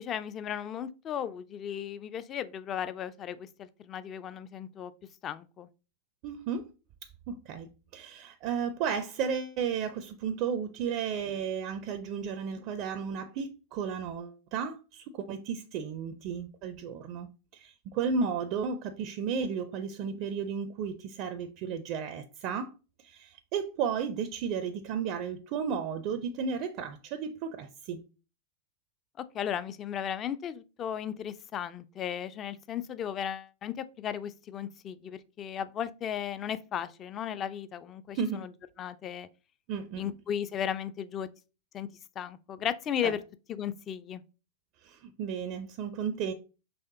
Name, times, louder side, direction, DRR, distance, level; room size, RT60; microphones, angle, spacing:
voice 1, 0.0-4.9 5.2-5.7 29.2-38.5 38.8-39.3 40.0-41.3 41.7-41.9 42.2-43.2 43.5-44.2, left 9 dB, 30° left, 0.4 m, -35 dB
voice 2, 6.2-6.7 7.3-17.3 17.5-22.7 23.0-28.0 38.1-38.4 39.7-40.1 43.0-43.1 44.8-46.3, right 6 dB, 45° right, 0.4 m, -33 dB
5.5 x 3.4 x 2.7 m
figure-of-eight pair, 90°, 0 cm